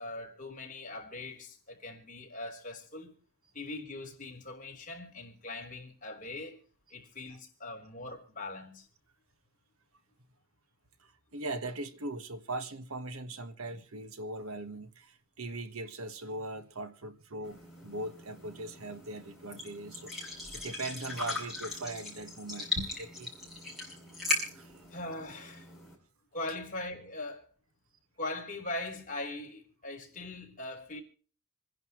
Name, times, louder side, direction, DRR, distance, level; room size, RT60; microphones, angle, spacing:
voice 1, 0.0-3.2 3.5-6.6 6.9-8.9 24.9-25.7 26.3-27.5 28.2-31.0, left 2 dB, 40° left, 3.8 m, -41 dB
voice 2, 11.0-23.3 24.5-24.8, right 2 dB, 85° right, 1.5 m, -40 dB
sound 1, 17.4-25.9, left 2 dB, ahead, 6.7 m, -39 dB
27.5 x 10.5 x 3.1 m
head